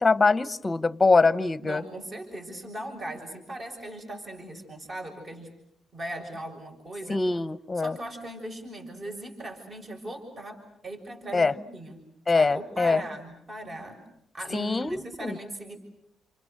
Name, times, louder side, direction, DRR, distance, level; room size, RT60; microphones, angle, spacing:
voice 1, 0.0-1.8 7.1-8.0 11.3-11.5 12.3-13.0 14.5-15.4, left 3 dB, 20° left, 15 dB, 1.0 m, -23 dB
voice 2, 1.6-5.5 5.9-7.2 7.7-12.0 12.3-14.0 14.3-15.8, right 1 dB, 35° right, 2 dB, 6.7 m, -39 dB
29.5 x 28.0 x 6.6 m, 0.76 s
cardioid pair, 90°, 0 cm